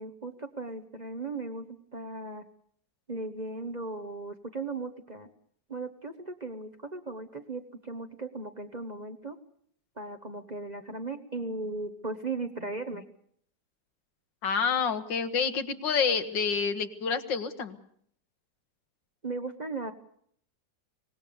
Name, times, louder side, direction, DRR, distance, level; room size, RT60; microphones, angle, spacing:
voice 1, 0.0-2.4 3.1-5.3 5.7-9.4 10.0-13.0 19.2-19.9, right 3 dB, 25° right, 8 dB, 1.1 m, -37 dB
voice 2, 14.4-17.8, left 6 dB, 85° left, 9 dB, 2.1 m, -28 dB
24.5 x 19.5 x 7.0 m, 0.63 s
omnidirectional pair, 1.9 m